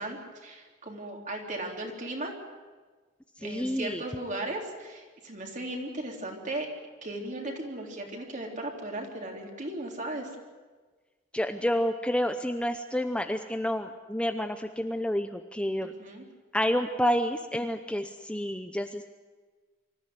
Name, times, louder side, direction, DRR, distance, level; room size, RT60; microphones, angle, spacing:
voice 1, 0.0-2.3 3.4-6.7 7.0-10.3 15.8-16.3, right 1 dB, 40° right, 1 dB, 3.7 m, -36 dB
voice 2, 3.4-4.0 11.3-15.9 16.5-19.1, equal, 5° left, 7 dB, 0.7 m, -29 dB
25.0 x 14.0 x 9.5 m, 1.4 s
head